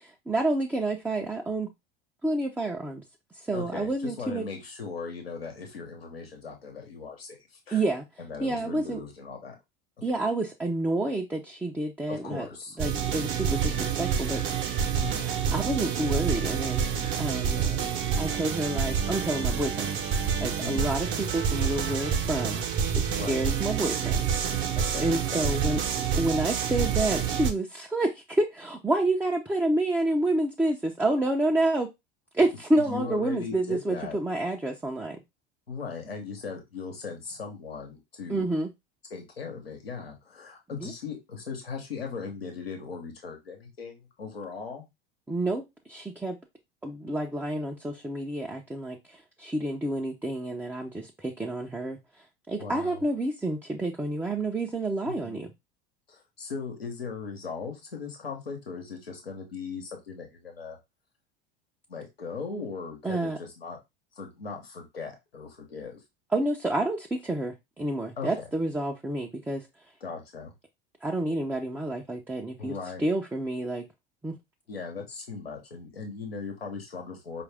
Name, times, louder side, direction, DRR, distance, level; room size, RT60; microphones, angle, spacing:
voice 1, 0.3-1.7 2.2-3.0 3.3-4.5 7.7-8.0 8.4-9.0 10.0-12.5 12.8-14.4 15.2-17.7 18.2-20.2 20.4-22.6 23.0-24.2 24.6-25.8 26.2-31.9 32.3-35.2 38.3-38.7 40.8-40.9 45.3-46.4 46.8-55.5 63.0-63.4 66.3-69.7 71.0-73.8 74.2-74.4, right 2 dB, 5° right, 1 dB, 0.5 m, -29 dB
voice 2, 3.5-7.4 7.7-7.8 8.2-9.6 12.1-12.8 15.0-15.4 17.6-17.9 20.6-20.9 23.1-23.5 24.7-25.8 32.9-34.2 35.7-38.5 39.1-44.8 52.6-53.0 55.1-55.4 56.1-60.8 61.9-63.8 64.2-66.0 68.2-68.4 70.0-70.5 72.6-73.0 74.7-77.4, left 5 dB, 90° left, 3 dB, 1.0 m, -38 dB
sound 1, 12.8-27.5, right 7 dB, 45° right, 0.9 m, -28 dB
4.7 x 2.5 x 3.3 m, 0.21 s
hypercardioid pair, 75°, 29 cm